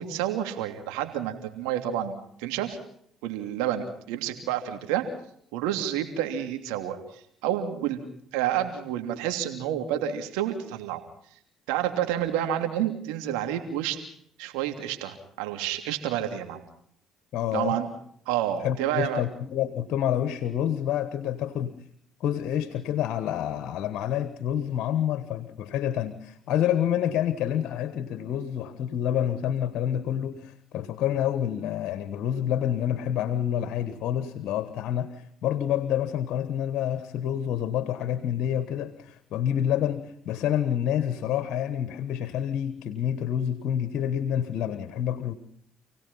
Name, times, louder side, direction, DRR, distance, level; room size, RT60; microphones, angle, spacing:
voice 1, 0.0-2.8 3.2-5.0 5.5-8.0 8.3-11.0 11.7-14.0 14.4-16.6 17.5-17.9 18.3-19.2, right 11 dB, 85° right, 6 dB, 3.0 m, -29 dB
voice 2, 17.3-17.8 18.6-21.7 22.2-45.3, left 10 dB, 70° left, 13 dB, 1.4 m, -28 dB
28.5 x 18.0 x 5.7 m, 0.67 s
supercardioid pair, 60°, 0 cm